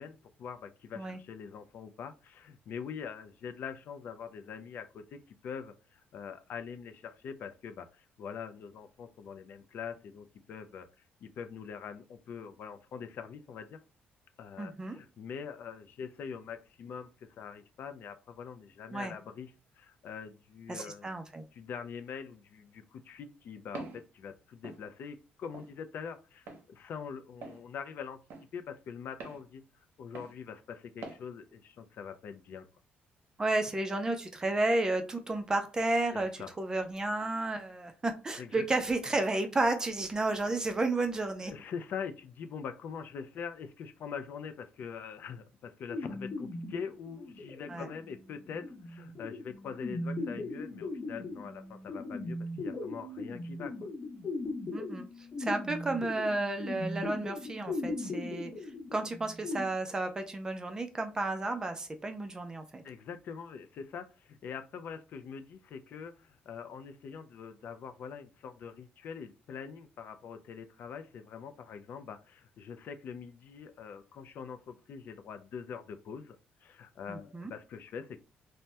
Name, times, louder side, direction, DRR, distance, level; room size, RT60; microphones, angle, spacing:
voice 1, 0.0-10.9 11.2-13.8 14.4-21.1 21.5-28.2 28.5-29.6 30.0-32.7 36.1-36.5 38.4-38.6 41.5-53.9 62.8-78.2, left 6 dB, 55° left, 9 dB, 0.3 m, -43 dB
voice 2, 14.6-15.0 18.9-19.1 20.7-21.4 33.4-36.3 36.6-41.5 47.7-47.9 54.7-55.1 55.4-58.5 58.9-62.8 77.1-77.5, right 2 dB, 15° right, 6 dB, 0.4 m, -32 dB
Walk footsteps, 23.7-24.0 24.6-24.8 25.5-25.7 26.5-26.6 27.4-27.6 28.3-28.5 29.2-29.4 30.1-30.3 31.0-31.2, right 3 dB, 65° right, 0.7 m, -44 dB
sound 1, 45.9-59.6, left 2 dB, 35° left, 0.9 m, -39 dB
2.7 x 2.1 x 3.2 m, 0.33 s
cardioid pair, 140°, 4 cm